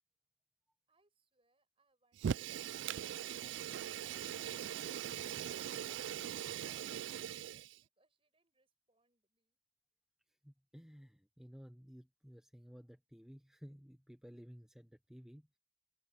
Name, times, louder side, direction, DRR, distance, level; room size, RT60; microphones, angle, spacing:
voice 1, 0.9-5.7 6.2-9.6, right 2 dB, 30° right, 7.8 m, -77 dB
Fire, 2.2-7.8, right 9 dB, 75° right, 0.3 m, -41 dB
voice 2, 10.4-15.5, equal, 5° right, 0.7 m, -55 dB
head